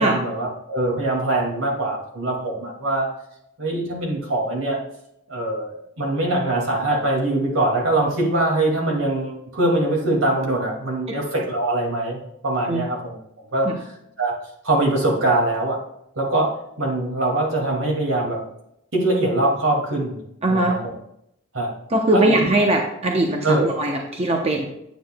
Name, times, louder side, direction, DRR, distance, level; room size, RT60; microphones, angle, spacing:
voice 1, 0.0-3.1 3.6-4.8 5.3-13.1 13.5-13.7 14.2-14.3 14.6-15.8 16.2-18.4 18.9-20.2 20.5-20.8 21.5-21.7 22.1-22.3 23.4-23.7, right 2 dB, 80° right, -1 dB, 2.3 m, -22 dB
voice 2, 20.4-20.8 21.9-24.7, right 1 dB, 30° right, 1 dB, 0.8 m, -20 dB
9.4 x 8.3 x 2.3 m, 0.78 s
head